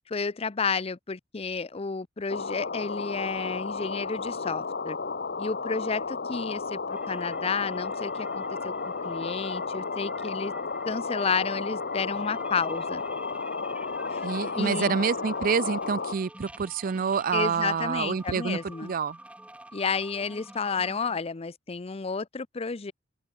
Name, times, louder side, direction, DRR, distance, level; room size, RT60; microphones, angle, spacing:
voice 1, 0.1-5.0 5.4-8.7 9.0-10.5 10.9-13.0 14.1-14.3 14.6-15.0 17.3-18.9 19.7-22.9, left 5 dB, 30° left, 0.6 m, -31 dB
sound 1, 2.3-16.1, left 4 dB, 55° left, 1.1 m, -33 dB
sound 2, 6.9-21.2, right 1 dB, 5° right, 3.9 m, -47 dB
voice 2, 14.2-19.2, right 6 dB, 45° right, 0.4 m, -27 dB
open air
head